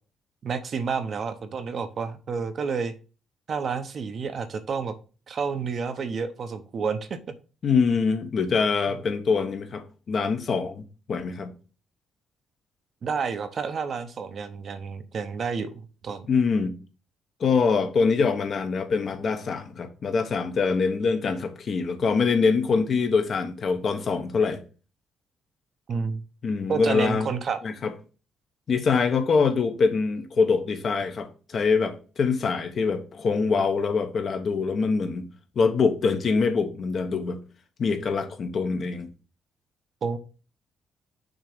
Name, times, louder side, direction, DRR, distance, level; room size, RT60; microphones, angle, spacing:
voice 1, 0.4-2.9 3.5-5.0 5.3-7.3 8.9-9.0 13.0-16.3 25.9-26.2 26.7-27.6 40.0-40.2, right 5 dB, 50° right, 0.8 m, -30 dB
voice 2, 7.6-10.8 11.1-11.5 16.3-16.7 17.4-24.6 26.4-27.3 27.6-27.9 28.7-35.3 35.6-37.4 37.8-39.1, left 5 dB, 50° left, 1.1 m, -24 dB
6.4 x 3.0 x 5.1 m
cardioid pair, 90°, 0 cm